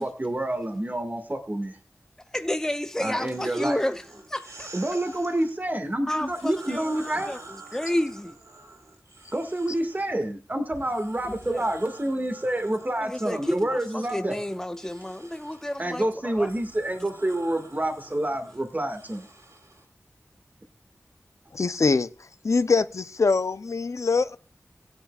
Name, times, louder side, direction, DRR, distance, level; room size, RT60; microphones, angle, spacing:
voice 1, 0.0-1.8 3.0-3.8 4.7-7.3 9.3-14.4 15.8-19.3, right 1 dB, 35° right, 1.9 m, -28 dB
voice 2, 2.3-4.7 6.1-8.4 11.2-11.6 13.0-16.5, left 1 dB, 10° left, 0.6 m, -31 dB
sound 1, 3.3-5.5 6.1-10.2 10.7-19.8, right 2 dB, 75° right, 3.8 m, -48 dB
voice 3, 21.5-22.1 22.4-24.4, left 4 dB, 70° left, 0.6 m, -23 dB
16.0 x 10.0 x 2.4 m
wide cardioid pair, 45°, 5 cm